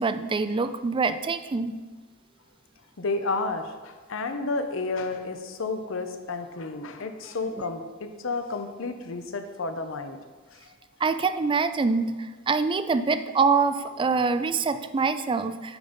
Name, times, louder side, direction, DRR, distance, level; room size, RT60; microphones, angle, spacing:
voice 1, 0.0-1.8 11.0-15.8, right 4 dB, 25° right, 11 dB, 0.3 m, -25 dB
voice 2, 3.0-10.2 10.5-10.6, left 3 dB, 70° left, 7 dB, 0.7 m, -31 dB
9.1 x 4.0 x 5.2 m, 1.3 s
head